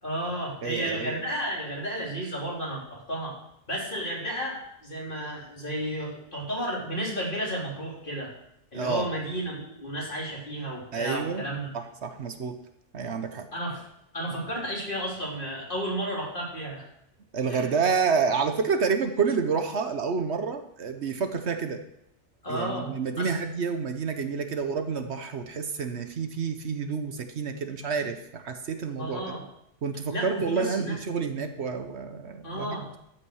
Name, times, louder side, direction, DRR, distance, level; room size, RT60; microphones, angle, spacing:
voice 1, 0.0-3.3 3.7-8.3 8.7-11.7 13.5-13.8 14.1-16.9 17.5-17.7 22.4-23.3 29.0-29.4 30.1-31.0 32.4-32.9, equal, 45° left, -4 dB, 3.5 m, -32 dB
voice 2, 0.6-1.1 8.7-9.1 10.9-11.4 11.7-12.5 12.9-13.5 17.3-21.8 22.5-29.2 29.8-33.0, right 5 dB, 65° right, 7 dB, 1.2 m, -29 dB
13.5 x 5.9 x 6.4 m, 0.76 s
omnidirectional pair, 1.2 m